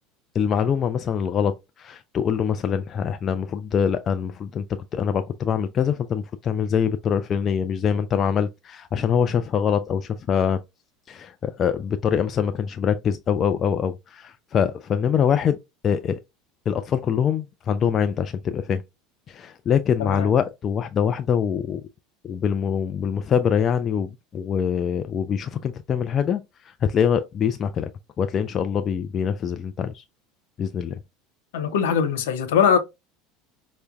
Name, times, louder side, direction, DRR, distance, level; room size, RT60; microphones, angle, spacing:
voice 1, 0.3-10.6 11.1-15.6 15.8-16.2 16.7-18.8 19.3-21.8 22.2-27.9 28.2-30.0 30.6-31.0, left 7 dB, 35° left, 0.3 m, -24 dB
voice 2, 20.0-20.3 31.5-32.8, left 7 dB, 65° left, 0.8 m, -21 dB
5.5 x 2.1 x 2.4 m
figure-of-eight pair, 70°, 0 cm